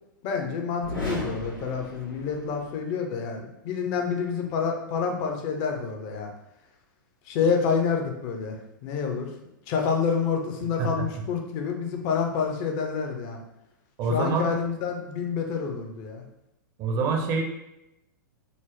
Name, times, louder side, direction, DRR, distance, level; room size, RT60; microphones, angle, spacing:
voice 1, 0.2-6.3 7.3-9.3 9.7-13.4 14.1-16.2, left 6 dB, 40° left, 3 dB, 0.6 m, -28 dB
sound 1, 0.8-2.8, left 1 dB, 85° left, 1.1 m, -35 dB
voice 2, 14.0-14.5 16.8-17.4, right 4 dB, 35° right, 2 dB, 0.5 m, -25 dB
3.9 x 2.0 x 3.1 m, 0.88 s
figure-of-eight pair, 105°, 11 cm